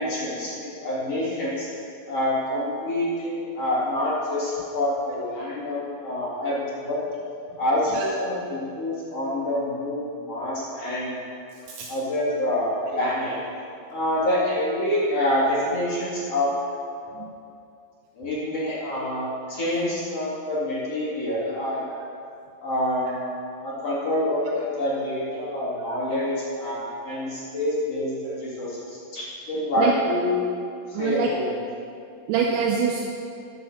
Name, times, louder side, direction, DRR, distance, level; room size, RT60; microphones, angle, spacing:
voice 1, 0.0-1.7 2.1-7.0 7.6-11.2 11.6-13.4 13.9-16.5 18.1-21.9 22.6-30.4 30.9-31.4, left 1 dB, 40° left, -8 dB, 3.2 m, -27 dB
voice 2, 30.9-31.3 32.3-33.0, right 7 dB, 80° right, 0 dB, 2.7 m, -24 dB
10.0 x 8.4 x 7.2 m, 2.4 s
omnidirectional pair, 4.9 m